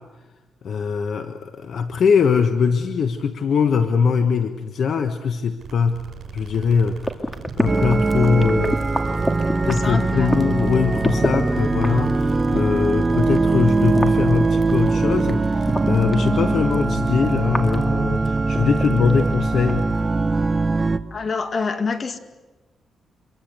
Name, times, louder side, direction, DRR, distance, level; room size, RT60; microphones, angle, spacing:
voice 1, 0.6-6.0 6.3-7.0 7.6-8.8 9.7-19.9, left 6 dB, 65° left, 7 dB, 1.3 m, -21 dB
sound 1, 5.6-16.0, right 7 dB, 55° right, 6.7 m, -39 dB
sound 2, 7.0-11.4 11.7-16.3 16.7-19.4 19.6-19.7, left 1 dB, 10° left, 2.4 m, -26 dB
sound 3, 7.7-21.0, right 3 dB, 25° right, 1.0 m, -21 dB
voice 2, 9.6-10.3 21.1-22.2, left 4 dB, 40° left, 9 dB, 2.0 m, -26 dB
26.0 x 22.5 x 8.1 m, 1.2 s
cardioid pair, 105°, 0 cm